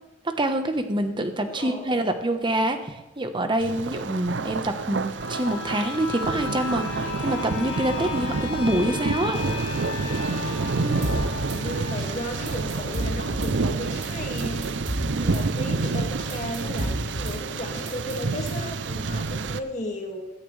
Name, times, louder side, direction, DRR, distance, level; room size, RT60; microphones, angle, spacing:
voice 1, 0.2-9.4 10.8-11.0, right 1 dB, 25° right, 7 dB, 1.1 m, -26 dB
voice 2, 1.3-2.2 10.8-20.2, left 1 dB, 40° left, 1 dB, 2.1 m, -35 dB
Thunder, 3.6-19.6, right 3 dB, 70° right, 0.6 m, -29 dB
sound 1, 5.0-14.6 15.0-15.1, left 4 dB, 85° left, 2.0 m, -35 dB
Drum kit / Snare drum, 11.0-11.6 12.0-12.1 12.3-13.5 13.9-14.1 14.4-15.4 15.8-15.9 16.2-17.4 17.7-18.7, right 1 dB, 40° right, 3.4 m, -32 dB
15.5 x 14.0 x 3.3 m, 0.99 s
head